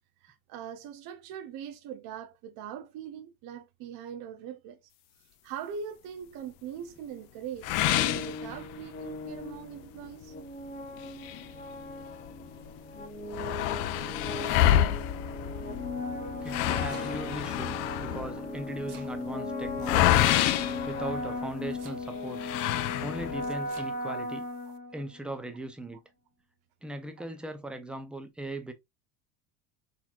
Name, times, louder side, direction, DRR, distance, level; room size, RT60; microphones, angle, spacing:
voice 1, 0.2-4.9 5.4-10.3 17.2-17.3, right 8 dB, 50° right, 0.6 m, -41 dB
sound 1, 7.6-9.1 9.5-9.6 10.1-10.2 11.0-12.3 12.6-12.7 12.9-21.7 22.4-23.5, left 13 dB, 80° left, 0.6 m, -28 dB
sound 2, 7.6-25.3, left 2 dB, 20° left, 0.9 m, -37 dB
voice 2, 16.4-20.3 20.5-22.4 23.0-24.4 24.9-26.0 26.8-28.7, right 1 dB, ahead, 0.4 m, -39 dB
Domestic sounds home sounds, 16.5-17.4 18.4-19.2 20.1-20.7 21.7-22.3 23.4-23.9, right 7 dB, 80° right, 1.3 m, -52 dB
4.1 x 2.9 x 2.4 m
supercardioid pair, 105°, 47 cm